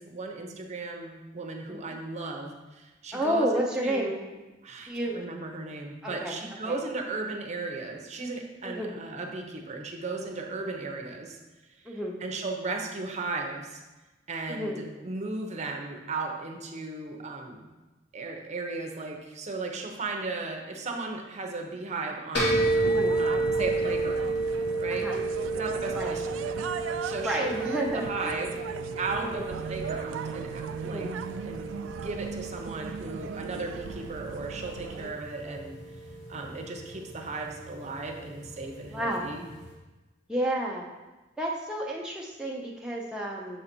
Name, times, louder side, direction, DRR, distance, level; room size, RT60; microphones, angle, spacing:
voice 1, 0.0-11.4 11.8-13.8 14.3-17.7 18.1-22.7 23.2-24.3 24.8-25.1 25.5-26.6 27.0-28.6 29.0-31.1 31.4-35.8 36.3-39.5, right 3 dB, 35° right, 2 dB, 0.7 m, -36 dB
voice 2, 3.1-4.1 4.9-5.2 6.0-6.3 6.6-6.8 8.6-8.9 11.9-12.2 14.5-14.8 22.9-23.2 24.9-25.2 25.9-26.2 27.2-28.4 29.2-29.5 30.8-31.1 35.0-35.1 38.9-39.2 40.3-40.9 41.4-43.6, right 1 dB, 5° right, -3 dB, 0.5 m, -31 dB
sound 1, 22.3-39.7, right 2 dB, 60° left, 1.9 m, -32 dB
sound 2, 22.5-35.1, right 6 dB, 85° right, 0.3 m, -38 dB
6.7 x 3.9 x 4.4 m, 1.1 s
head